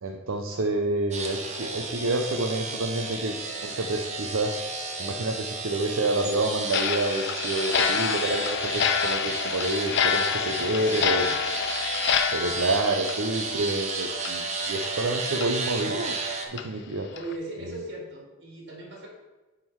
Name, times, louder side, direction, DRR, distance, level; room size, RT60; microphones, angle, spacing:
voice 1, 0.0-4.5 5.0-11.3 12.3-16.2 16.5-17.1, right 2 dB, 75° right, 3 dB, 0.6 m, -28 dB
sound 1, 1.1-16.5, right 4 dB, 35° right, 1.0 m, -33 dB
Clock, 6.7-13.9 14.2-14.3 14.8-14.9 15.4-15.5 16.0-16.1 16.6-16.7 17.2-17.3, left 7 dB, 55° left, 0.5 m, -28 dB
voice 2, 10.6-11.3 17.1-19.1, right 1 dB, 60° right, -2 dB, 2.4 m, -38 dB
9.5 x 3.8 x 4.7 m, 1.2 s
head